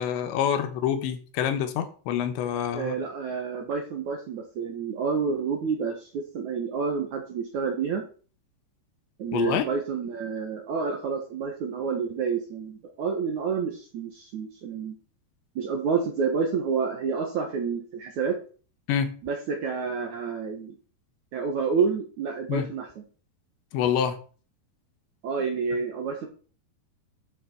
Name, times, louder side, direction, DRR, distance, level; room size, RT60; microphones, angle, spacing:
voice 1, 0.0-3.0 9.3-9.7 18.9-19.1 22.5-22.7 23.7-24.2, left 8 dB, 85° left, 8 dB, 3.4 m, -26 dB
voice 2, 2.7-8.0 9.2-15.0 15.6-18.4 19.2-20.8 21.3-22.9 25.2-26.3, right 5 dB, 60° right, 3 dB, 2.1 m, -29 dB
13.0 x 6.5 x 4.5 m, 0.40 s
omnidirectional pair, 5.1 m